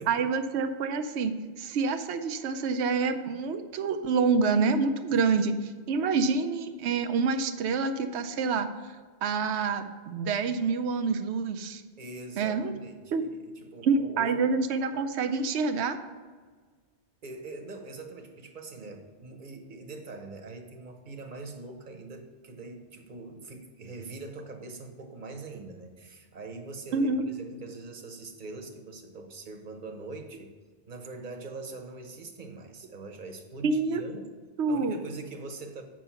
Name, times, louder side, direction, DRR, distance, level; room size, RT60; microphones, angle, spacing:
voice 1, 0.1-5.5 5.9-8.7 9.2-11.8 12.4-12.7 13.1-13.2 13.8-16.0 26.9-27.2 33.6-34.0 34.6-35.0, right 4 dB, 80° right, 6 dB, 0.9 m, -27 dB
voice 2, 12.0-14.5 17.2-30.5 30.9-34.3 34.7-35.8, right 3 dB, 45° right, 4 dB, 1.1 m, -43 dB
7.5 x 5.4 x 5.6 m, 1.5 s
omnidirectional pair, 1.1 m